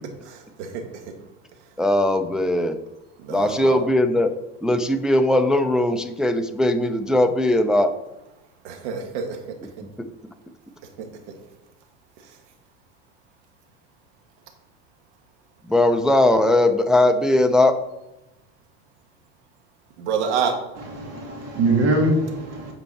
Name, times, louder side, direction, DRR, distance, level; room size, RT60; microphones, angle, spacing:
voice 1, 1.8-2.8 3.3-4.3 4.6-7.9 10.0-10.1 15.7-17.8, left 1 dB, ahead, 7 dB, 0.4 m, -19 dB
voice 2, 3.2-3.8 8.6-9.4 11.0-11.1 20.0-20.5, right 6 dB, 80° right, 3 dB, 1.6 m, -26 dB
voice 3, 20.8-22.7, right 2 dB, 45° right, 0 dB, 2.3 m, -22 dB
8.7 x 4.5 x 4.2 m, 0.98 s
supercardioid pair, 105°, 34 cm